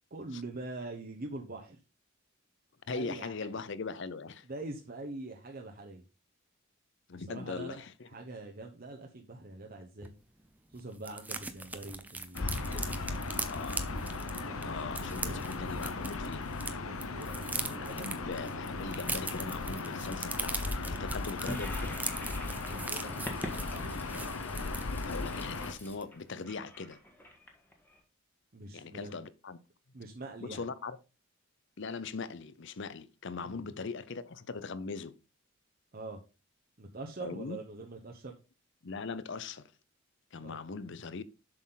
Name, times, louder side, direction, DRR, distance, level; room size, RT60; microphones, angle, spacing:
voice 1, 0.1-1.8 2.9-3.6 4.5-6.0 7.3-7.8 8.1-10.1 10.7-13.5 14.4-14.7 15.0-15.4 16.9-18.2 22.7-23.8 28.5-29.2 29.9-30.6 33.4-33.7 35.9-36.2 36.8-38.3 40.4-40.6, right 2 dB, 45° right, 1.0 m, -44 dB
voice 2, 2.9-4.5 7.1-8.1 13.4-14.1 14.6-16.5 17.8-22.0 25.0-27.0 28.7-29.6 30.4-31.0 31.8-35.2 37.2-37.6 38.8-39.7 40.3-41.2, left 4 dB, 55° left, 0.6 m, -40 dB
sound 1, 10.0-10.1 10.4-10.5 10.7-16.7 17.0-25.2 25.6-25.8 26.0-26.3, right 3 dB, 10° right, 0.7 m, -40 dB
Gull seagull / Ocean, 12.3-25.7, left 3 dB, 85° left, 0.9 m, -37 dB
Toilet flush, 21.5-28.0, left 1 dB, 10° left, 1.5 m, -44 dB
7.5 x 6.3 x 4.0 m
head